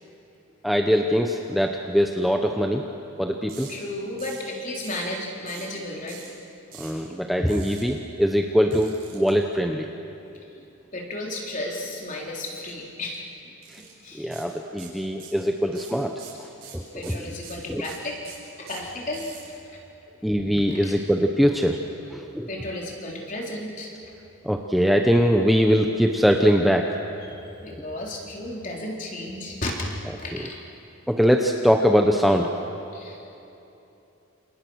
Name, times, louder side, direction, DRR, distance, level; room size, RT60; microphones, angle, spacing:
voice 1, 0.6-2.8 3.2-3.7 6.8-9.9 13.7-13.8 14.1-16.5 16.7-17.2 17.7-17.8 20.2-21.8 22.1-22.5 24.4-26.9 30.3-30.4 31.1-32.5, equal, ahead, 3 dB, 0.9 m, -22 dB
sound 1, 3.5-3.7 4.2-4.5 4.8-5.1 5.5-5.7 6.1-6.3 6.7-7.0 7.5-7.8 8.7-9.3 12.4-12.7 13.0-13.2 13.6-13.9 14.3-14.5 14.8-15.4 15.7-19.4, right 8 dB, 45° right, 7.4 m, -44 dB
voice 2, 3.7-6.3 10.3-10.7 10.9-13.5 14.0-14.4 16.6-16.7 16.9-18.2 18.6-19.3 20.7-21.0 22.5-23.9 27.2-29.7 30.2-30.6 32.9-33.3, left 1 dB, 35° left, -1 dB, 3.8 m, -34 dB
30.0 x 27.5 x 6.4 m, 2.9 s
head